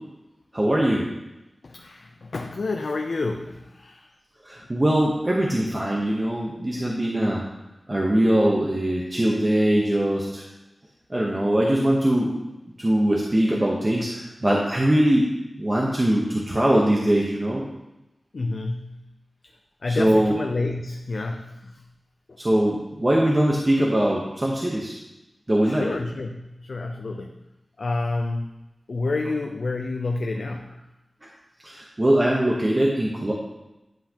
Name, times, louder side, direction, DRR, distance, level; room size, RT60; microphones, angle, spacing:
voice 1, 0.5-1.1 4.4-7.4 7.9-10.4 11.1-12.3 12.8-15.3 15.6-17.6 19.9-20.3 22.4-25.0 25.5-25.9 31.6-33.3, right 1 dB, 30° right, -3 dB, 0.9 m, -21 dB
voice 2, 1.6-4.0 18.3-19.0 19.8-21.8 22.3-22.4 25.6-27.3 27.8-28.6 28.9-30.8, left 3 dB, 75° left, 3 dB, 0.5 m, -29 dB
10.5 x 5.7 x 2.9 m, 0.95 s
wide cardioid pair, 85°, 0 cm